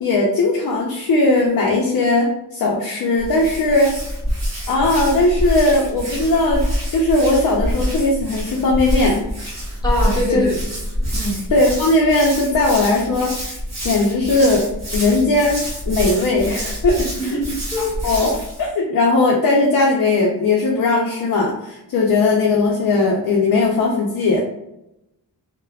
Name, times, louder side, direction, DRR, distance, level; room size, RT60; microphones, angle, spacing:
voice 1, 0.0-3.9 4.7-6.6 6.9-9.2 10.3-10.4 11.5-13.6 13.8-14.7 14.9-17.4 17.8-18.3 18.6-24.4, left 2 dB, 60° left, -2 dB, 0.5 m, -18 dB
Hands, 3.2-18.6, equal, 40° right, 1.0 m, -26 dB
voice 2, 9.8-10.5 11.1-11.4 17.1-17.9, left 1 dB, 10° left, -5 dB, 0.8 m, -23 dB
3.3 x 2.1 x 2.3 m, 0.85 s
wide cardioid pair, 165°, 39 cm